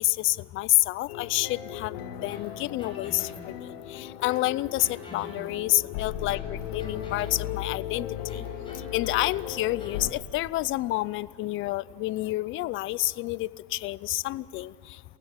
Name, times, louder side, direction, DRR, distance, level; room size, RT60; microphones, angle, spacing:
voice 1, 0.0-1.9 2.2-8.1 8.3-8.4 8.9-14.7, left 18 dB, 45° left, 21 dB, 0.6 m, -28 dB
sound 1, 1.1-10.1, left 10 dB, 85° left, 1.8 m, -37 dB
sound 2, 2.3-3.7 4.3-5.7 6.3-7.6 8.3-10.1, left 2 dB, 15° left, 7.5 m, -47 dB
28.5 x 16.0 x 9.8 m, 2.2 s
supercardioid pair, 130°, 29 cm